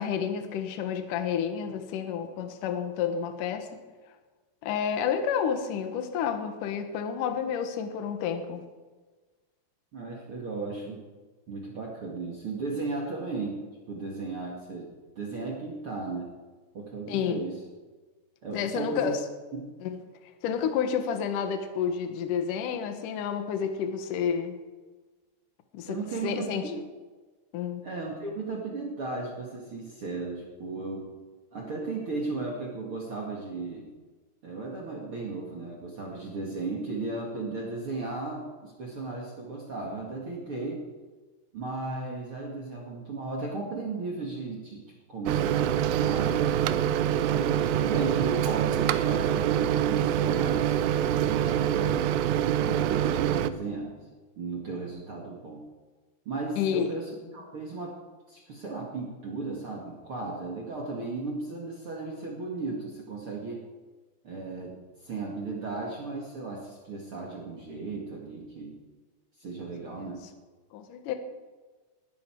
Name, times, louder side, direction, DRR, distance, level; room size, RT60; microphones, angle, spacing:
voice 1, 0.0-3.8 4.6-8.6 17.1-17.4 18.5-19.2 19.8-20.0 20.4-24.6 25.7-26.7 27.5-27.8 56.6-57.0 70.7-71.1, left 7 dB, 75° left, 7 dB, 2.0 m, -30 dB
voice 2, 9.9-11.0 11.5-13.6 13.9-14.9 15.1-16.3 16.7-17.6 18.4-19.1 19.5-19.7 25.9-26.8 27.8-31.1 31.5-33.9 34.4-40.8 41.5-44.8 45.1-46.5 47.3-50.7 51.2-52.1 52.6-54.0 54.3-55.6 56.2-58.0 58.3-63.7 64.2-64.8 65.0-68.8 69.4-70.2, right 3 dB, 50° right, -1 dB, 1.6 m, -35 dB
Microwave oven, 45.3-53.5, right 10 dB, 85° right, 2.4 m, -25 dB
19.5 x 13.5 x 4.7 m, 1.3 s
omnidirectional pair, 5.7 m